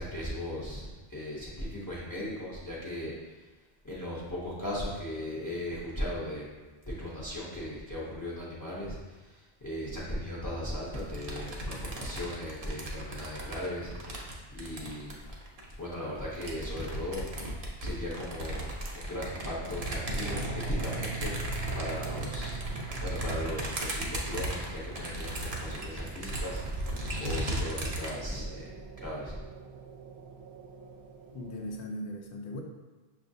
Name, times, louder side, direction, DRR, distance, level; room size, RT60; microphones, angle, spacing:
voice 1, 0.0-3.5 3.8-6.5 6.9-13.9 14.5-15.2 15.8-17.3 17.6-18.7 18.9-22.6 23.0-26.8 27.2-29.4, left 1 dB, 25° left, -7 dB, 0.5 m, -37 dB
sound 1, 10.9-15.7 16.3-28.1, right 1 dB, 45° right, 0.6 m, -36 dB
sound 2, 19.8-31.8, right 6 dB, 75° right, 0.8 m, -43 dB
voice 2, 31.3-32.6, left 1 dB, 85° left, 2 dB, 0.9 m, -38 dB
6.0 x 2.4 x 2.6 m, 1.2 s
omnidirectional pair, 1.1 m